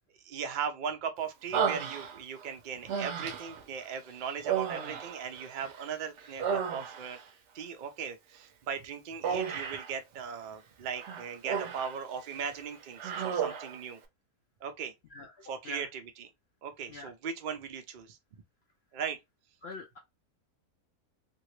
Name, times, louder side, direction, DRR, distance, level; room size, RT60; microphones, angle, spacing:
voice 1, 0.2-7.2 7.5-14.0 14.6-14.9 15.4-16.3 16.6-18.2 18.9-19.2, right 6 dB, 75° right, 0.4 m, -38 dB
Human voice, 1.5-2.4 2.9-3.6 4.4-5.9 6.2-7.2 9.2-9.9 10.9-12.0 12.3-12.5 13.0-13.8, right 7 dB, 60° right, 0.9 m, -33 dB
voice 2, 19.6-20.0, left 3 dB, 85° left, 0.5 m, -43 dB
2.8 x 2.8 x 3.0 m
omnidirectional pair, 1.7 m